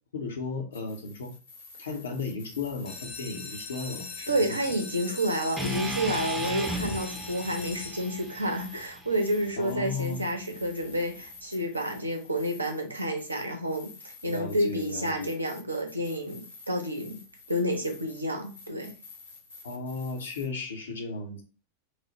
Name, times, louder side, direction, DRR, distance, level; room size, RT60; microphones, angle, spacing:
voice 1, 0.1-1.3 1.8-4.6 9.6-10.2 14.2-15.3 19.6-21.4, left 4 dB, 65° left, 0.7 m, -35 dB
sound 1, 0.7-20.4, left 4 dB, 85° left, 1.4 m, -50 dB
sound 2, 2.9-8.5 9.1-9.6 10.0-10.1 10.3-10.4 10.8-11.0, left 4 dB, 35° left, 0.7 m, -41 dB
voice 2, 4.3-13.9 14.2-17.2 17.5-18.9, equal, 80° right, 0.6 m, -30 dB
sound 3, 5.6-9.7, right 1 dB, 10° right, 0.5 m, -36 dB
3.0 x 2.0 x 2.9 m
figure-of-eight pair, 90°, 0 cm